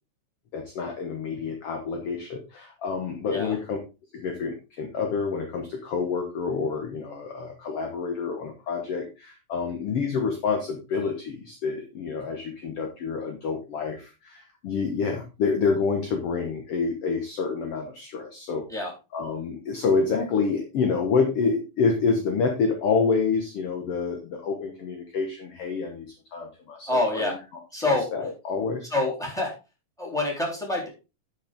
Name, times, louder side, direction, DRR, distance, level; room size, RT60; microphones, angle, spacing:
voice 1, 0.5-3.8 4.1-18.7 19.1-27.3 27.7-28.9, left 5 dB, 60° left, 4 dB, 1.6 m, -28 dB
voice 2, 26.9-27.3 27.7-28.0 28.9-29.5 30.0-30.9, left 2 dB, ahead, -1 dB, 3.1 m, -26 dB
10.0 x 6.5 x 3.7 m, 0.29 s
omnidirectional pair, 4.2 m